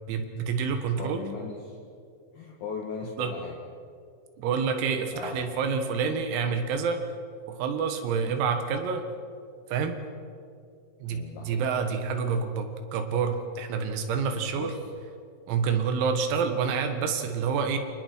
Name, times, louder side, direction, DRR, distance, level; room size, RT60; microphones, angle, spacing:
voice 1, 0.1-1.2 3.2-3.3 4.4-7.0 7.5-9.0 9.7-9.9 11.0-14.7 15.5-17.8, right 6 dB, 85° right, 6 dB, 4.4 m, -28 dB
voice 2, 0.9-1.8 2.3-3.6 5.1-5.5 11.1-11.6 14.5-14.8, left 5 dB, 55° left, -1 dB, 2.2 m, -38 dB
29.5 x 27.5 x 4.7 m, 2.3 s
omnidirectional pair, 6.0 m